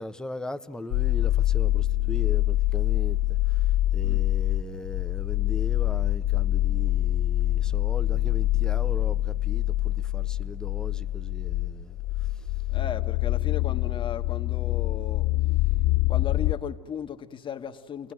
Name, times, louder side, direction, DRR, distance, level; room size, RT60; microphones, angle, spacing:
voice 1, 0.0-12.5, left 2 dB, 5° left, 1.0 m, -39 dB
sound 1, 0.9-16.5, left 15 dB, 55° left, 2.1 m, -25 dB
voice 2, 12.7-15.3 16.1-18.1, left 8 dB, 30° left, 1.6 m, -36 dB
29.5 x 21.0 x 7.8 m
hypercardioid pair, 90°, 18 cm